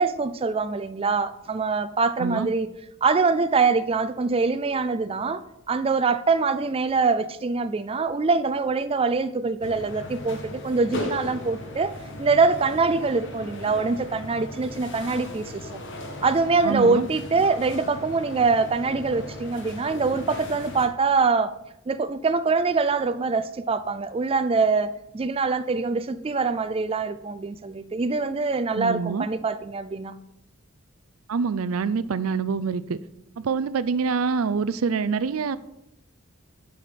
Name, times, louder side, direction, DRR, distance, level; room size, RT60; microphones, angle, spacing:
voice 1, 0.0-2.7 3.0-5.4 5.7-11.9 12.2-15.8 16.2-21.5 21.9-30.1, right 4 dB, 25° right, 0.4 m, -24 dB
voice 2, 2.2-2.5 16.6-17.1 28.7-29.3 31.3-33.0 33.4-35.6, right 5 dB, 85° right, 0.4 m, -26 dB
sound 1, 9.6-20.9, left 1 dB, 60° left, 1.3 m, -37 dB
9.6 x 5.7 x 5.1 m
head